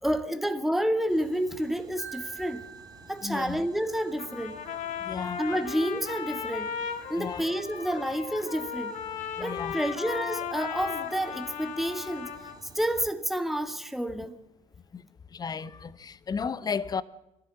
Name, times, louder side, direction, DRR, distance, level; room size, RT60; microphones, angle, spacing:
voice 1, 0.0-2.6 3.1-4.6 5.4-6.7 7.1-8.9 9.4-12.3 12.8-14.3, equal, ahead, 1.7 m, -29 dB
sound 1, 1.1-13.1, right 3 dB, 20° right, 4.6 m, -54 dB
Marimba xylophone, 2.0-4.0, right 5 dB, 90° left, 2.6 m, -45 dB
voice 2, 3.2-3.6 5.0-5.4 7.1-7.4 9.4-9.8 14.9-15.1 15.3-17.0, left 6 dB, 25° left, 0.9 m, -34 dB
Trumpet, 4.2-12.6, left 7 dB, 50° left, 2.0 m, -36 dB
23.5 x 15.0 x 7.5 m
figure-of-eight pair, 60°, 17 cm